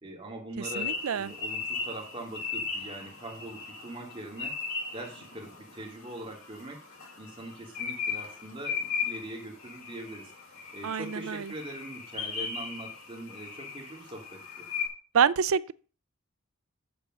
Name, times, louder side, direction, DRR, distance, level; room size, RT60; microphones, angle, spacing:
voice 1, 0.0-4.5 4.9-6.8 7.2-10.3 10.7-14.7, right 1 dB, 25° right, 2.5 m, -42 dB
sound 1, 0.6-14.9, left 5 dB, 85° left, 3.4 m, -37 dB
voice 2, 0.8-1.3 10.8-11.5 15.1-15.7, right 7 dB, 85° right, 0.5 m, -26 dB
7.0 x 6.9 x 6.2 m
head